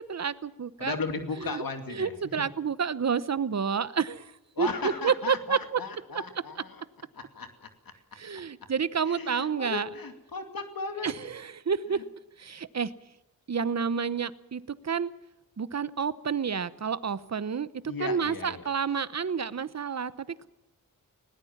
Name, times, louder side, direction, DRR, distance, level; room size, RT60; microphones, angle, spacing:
voice 1, 0.0-0.9 1.4-1.6 1.9-4.3 4.6-5.8 6.6-6.7 8.2-9.9 11.0-12.0 12.4-12.9 13.5-15.1 15.6-17.7 18.0-20.5, right 6 dB, 50° right, 15 dB, 0.9 m, -29 dB
voice 2, 0.8-2.1 2.4-2.5 4.6-6.8 7.1-7.7 9.1-11.1 17.9-18.7, left 4 dB, 75° left, 6 dB, 2.5 m, -36 dB
20.5 x 18.5 x 7.3 m, 0.95 s
wide cardioid pair, 95°, 35 cm